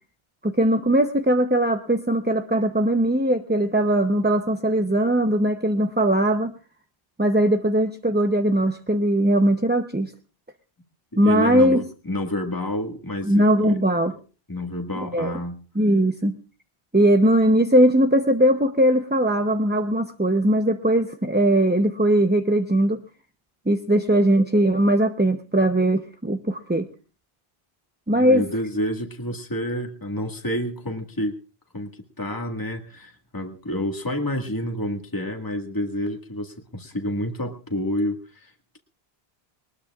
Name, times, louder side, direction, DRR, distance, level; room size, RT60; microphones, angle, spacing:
voice 1, 0.4-6.5 7.2-10.1 11.2-11.8 13.3-14.1 15.0-15.3 15.8-16.3 16.9-23.0 23.7-26.9 28.1-28.4, right 1 dB, 10° right, 6 dB, 0.7 m, -20 dB
voice 2, 11.2-13.8 14.5-15.6 28.1-31.3 31.7-31.9 32.2-38.8, left 1 dB, 20° left, 3 dB, 1.8 m, -29 dB
21.5 x 20.0 x 2.4 m, 0.35 s
omnidirectional pair, 1.0 m